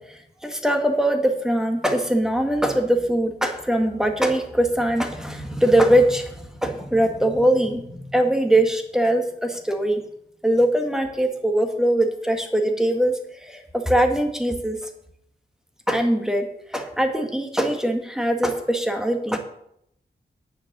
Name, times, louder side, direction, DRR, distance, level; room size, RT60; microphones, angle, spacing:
voice 1, 0.0-10.0 10.4-14.9 15.9-16.5 16.7-19.4, right 1 dB, 5° right, 4 dB, 1.9 m, -22 dB
9.4 x 6.9 x 6.9 m, 0.73 s
wide cardioid pair, 80°, 19 cm